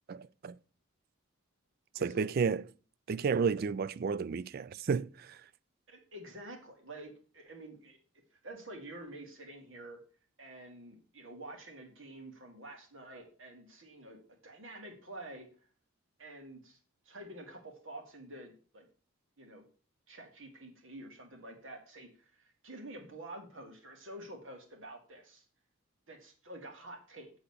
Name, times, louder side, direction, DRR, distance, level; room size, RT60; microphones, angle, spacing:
voice 1, 0.1-0.6 2.0-2.6 3.1-5.4, right 5 dB, 45° right, 0.3 m, -32 dB
voice 2, 2.0-2.3 5.9-8.0 8.4-10.0 10.4-15.5 16.2-16.8 17.1-18.9 19.4-19.6 20.1-25.4 26.1-27.3, right 1 dB, 65° right, 2.2 m, -48 dB
8.3 x 3.9 x 7.0 m
head